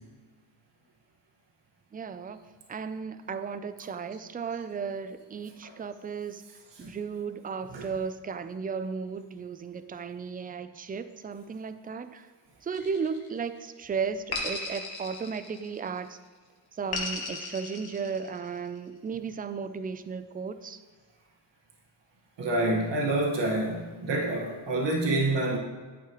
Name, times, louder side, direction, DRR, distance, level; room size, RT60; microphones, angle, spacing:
voice 1, 1.9-2.4 2.7-6.4 6.8-12.3 12.6-16.2 16.7-20.8, right 5 dB, 20° right, 12 dB, 0.3 m, -35 dB
sound 1, 12.7-13.6 14.3-16.0 16.9-18.6, left 3 dB, 50° left, 1.7 m, -36 dB
voice 2, 22.4-25.6, right 2 dB, 60° right, -1 dB, 1.7 m, -27 dB
11.0 x 8.5 x 3.0 m, 1.5 s
cardioid pair, 125°, 49 cm